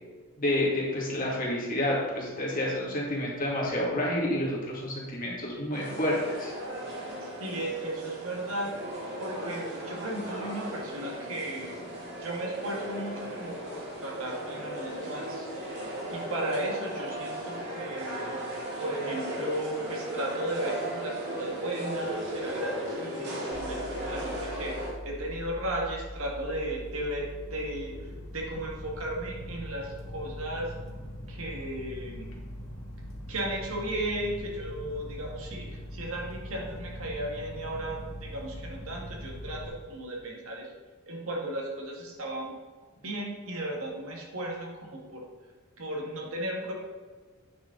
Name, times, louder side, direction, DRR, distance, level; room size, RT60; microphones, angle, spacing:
voice 1, 0.4-6.5, left 1 dB, 40° left, -4 dB, 2.3 m, -29 dB
sound 1, 5.7-24.9, right 1 dB, 50° right, 2.2 m, -36 dB
voice 2, 7.4-8.8 9.2-11.8 12.2-15.5 16.1-18.4 18.8-30.7 31.3-32.4 33.3-40.7 41.1-42.6 43.0-45.2 45.8-46.7, right 1 dB, 70° right, -1 dB, 1.9 m, -35 dB
sound 2, 23.5-39.7, equal, 65° left, 2.0 m, -42 dB
9.0 x 6.4 x 4.0 m, 1.4 s
head